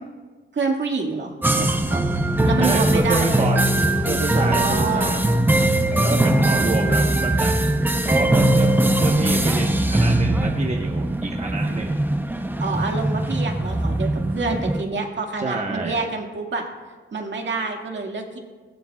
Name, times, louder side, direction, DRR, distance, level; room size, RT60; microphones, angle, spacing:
voice 1, 0.5-2.0 2.4-3.5 4.4-5.2 12.6-16.7 17.1-18.4, right 4 dB, 60° right, 1 dB, 2.0 m, -27 dB
sound 1, 1.4-14.8, right 1 dB, 10° right, 0.7 m, -20 dB
voice 2, 2.6-3.7 4.0-5.2 6.0-7.6 8.0-8.7 9.0-12.0 15.4-16.1, right 3 dB, 35° right, 0 dB, 1.2 m, -27 dB
20.0 x 19.0 x 2.4 m, 1.4 s
wide cardioid pair, 130°, 21 cm